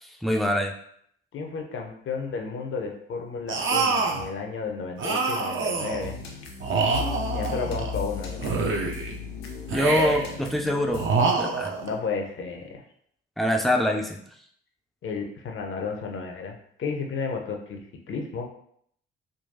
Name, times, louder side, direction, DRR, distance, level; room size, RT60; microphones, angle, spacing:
voice 1, 0.0-0.7 9.7-11.8 13.4-14.2, left 1 dB, ahead, 2 dB, 0.5 m, -25 dB
voice 2, 1.3-6.2 7.3-8.6 11.8-12.8 15.0-18.5, left 5 dB, 45° left, 2 dB, 0.7 m, -32 dB
sound 1, 3.5-4.3 5.0-6.1 6.6-8.0 8.4-9.2 9.7-10.4 10.9-11.9, right 4 dB, 45° right, 0.6 m, -26 dB
sound 2, 6.0-11.1, left 5 dB, 90° left, 0.4 m, -35 dB
3.7 x 2.3 x 2.7 m, 0.67 s
hypercardioid pair, 45°, 29 cm